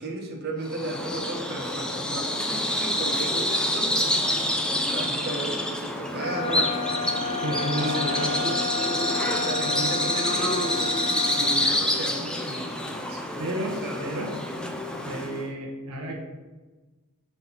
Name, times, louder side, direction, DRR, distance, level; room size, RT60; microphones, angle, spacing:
voice 1, 0.0-4.0 4.9-6.8 7.8-8.6 9.4-10.9 11.3-13.4 13.8-14.3, right 1 dB, 45° right, -1 dB, 1.0 m, -35 dB
Bird vocalization bird call bird song, 0.7-15.5, left 1 dB, 5° left, 0.4 m, -27 dB
sound 1, 6.2-11.7, left 3 dB, 90° left, 0.8 m, -31 dB
voice 2, 7.4-8.4 9.4-9.9 11.6-11.8 13.4-14.3 15.1-16.2, right 1 dB, 75° right, 0 dB, 0.8 m, -32 dB
5.5 x 3.1 x 5.6 m, 1.2 s
head